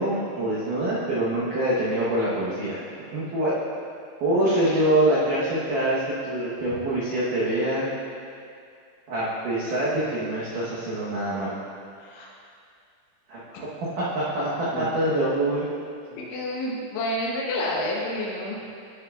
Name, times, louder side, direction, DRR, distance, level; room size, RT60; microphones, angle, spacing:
voice 1, 0.0-2.8 3.1-3.5 4.2-7.9 9.1-11.6 13.3-13.7 14.0-15.7 16.1-16.2, right 1 dB, 85° right, -9 dB, 1.8 m, -25 dB
voice 2, 16.2-18.6, left 1 dB, 75° left, -2 dB, 3.3 m, -29 dB
15.0 x 6.5 x 2.4 m, 2.3 s
omnidirectional pair, 5.6 m